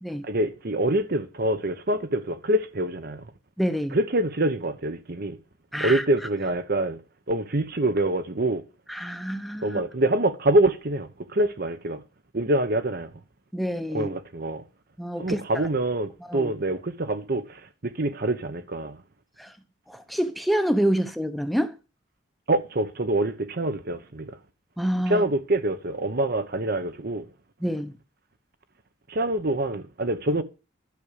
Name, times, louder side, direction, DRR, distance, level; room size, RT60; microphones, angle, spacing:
voice 1, 0.2-3.3 3.9-5.4 5.8-7.0 7.3-8.6 9.6-12.0 12.3-13.1 13.9-14.6 15.2-19.0 22.5-24.4 25.1-27.3 29.1-30.4, right 1 dB, 50° right, 1.0 m, -25 dB
voice 2, 3.6-4.0 5.7-6.0 8.9-9.8 13.5-14.1 15.0-15.4 16.2-16.5 19.4-19.5 19.9-21.7 24.8-25.2 27.6-27.9, equal, ahead, 0.8 m, -27 dB
12.0 x 6.2 x 6.7 m
head